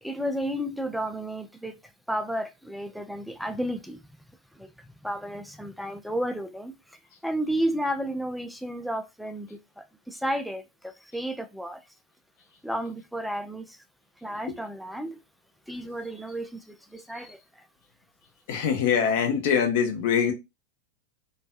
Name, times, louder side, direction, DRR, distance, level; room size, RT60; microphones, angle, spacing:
voice 1, 0.0-1.8 2.1-4.0 4.5-11.8 12.6-13.8 14.2-15.2 15.7-17.7, equal, ahead, 0.3 m, -32 dB
voice 2, 18.5-20.3, left 7 dB, 50° left, 0.7 m, -23 dB
2.5 x 2.3 x 2.3 m
figure-of-eight pair, 90°, 0 cm